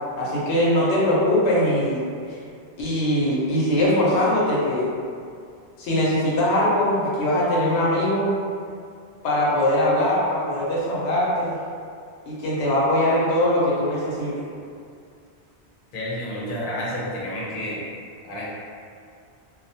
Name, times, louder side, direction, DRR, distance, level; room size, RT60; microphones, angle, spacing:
voice 1, 0.2-2.3 2.8-4.8 5.8-8.3 9.2-11.6 12.3-14.4, left 1 dB, 85° left, -6 dB, 0.9 m, -21 dB
voice 2, 15.9-17.8 18.2-18.4, left 1 dB, 55° left, -7 dB, 0.8 m, -30 dB
2.3 x 2.1 x 2.7 m, 2.3 s
omnidirectional pair, 1.1 m